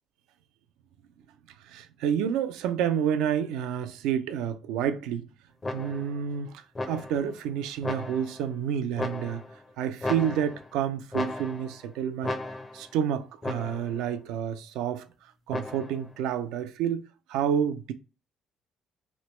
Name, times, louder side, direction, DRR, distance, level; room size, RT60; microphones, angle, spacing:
voice 1, 1.6-5.3 5.7-9.4 9.8-12.4 12.7-17.0 17.3-17.9, right 9 dB, 80° right, 0.3 m, -29 dB
sound 1, 5.6-6.2 6.8-7.3 7.8-8.5 9.0-9.6 10.0-10.8 11.1-11.8 12.2-12.9 13.4-14.0 15.5-16.1, left 2 dB, 30° left, 0.6 m, -35 dB
3.1 x 2.9 x 3.0 m
supercardioid pair, 70°, 0 cm